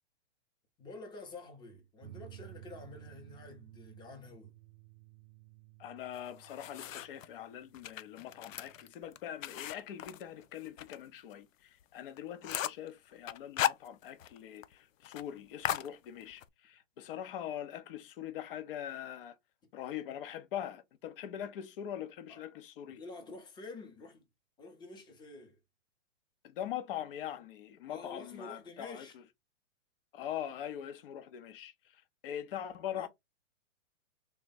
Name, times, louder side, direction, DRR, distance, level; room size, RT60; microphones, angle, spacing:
voice 1, 0.8-4.5 22.3-22.4 22.8-24.3 24.6-25.6 27.9-29.2 32.9-33.1, left 3 dB, 10° left, 0.7 m, -48 dB
sound 1, 2.0-8.9, right 15 dB, 60° right, 0.5 m, -55 dB
voice 2, 5.8-19.4 19.7-23.0 26.4-29.1 30.1-33.1, left 10 dB, 45° left, 0.7 m, -42 dB
sound 2, 6.1-7.3 7.7-11.0 11.3-11.4 11.8-11.9 12.2-12.9 13.3-14.4 14.6-14.7 15.0-15.3 15.6-16.5, left 12 dB, 85° left, 0.5 m, -37 dB
3.5 x 2.2 x 4.0 m
hypercardioid pair, 140°, 38 cm